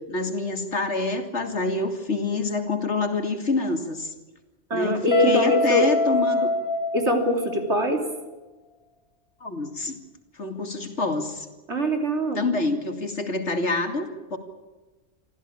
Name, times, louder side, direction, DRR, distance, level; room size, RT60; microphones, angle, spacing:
voice 1, 0.1-4.1 4.7-6.5 9.4-10.0 10.4-11.5 12.4-14.4, left 3 dB, 85° left, 5 dB, 2.9 m, -27 dB
voice 2, 4.7-5.9 6.9-8.0 11.7-12.4, equal, 75° right, 4 dB, 3.6 m, -22 dB
Guitar, 5.1-7.9, left 3 dB, 55° left, 5.0 m, -25 dB
25.0 x 15.0 x 8.7 m, 1.2 s
omnidirectional pair, 1.2 m